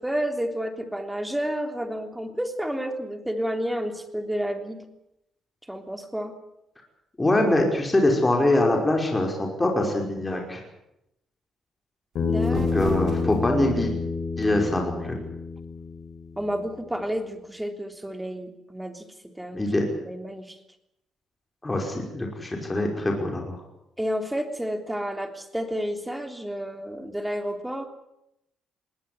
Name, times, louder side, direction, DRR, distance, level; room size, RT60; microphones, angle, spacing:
voice 1, 0.0-4.8 5.7-6.3 12.3-12.9 16.4-19.1 19.3-19.6 20.0-20.6 24.0-27.9, equal, 5° right, 6 dB, 3.3 m, -30 dB
voice 2, 7.2-10.6 12.5-13.9 14.4-15.2 19.5-19.9 21.6-23.6, left 1 dB, 15° left, 1 dB, 5.4 m, -23 dB
sound 1, 12.1-13.7, right 5 dB, 60° right, 4.8 m, -39 dB
Bass guitar, 12.2-16.5, left 4 dB, 70° left, 7.4 m, -28 dB
20.5 x 17.5 x 9.9 m, 0.84 s
cardioid pair, 90°, 0 cm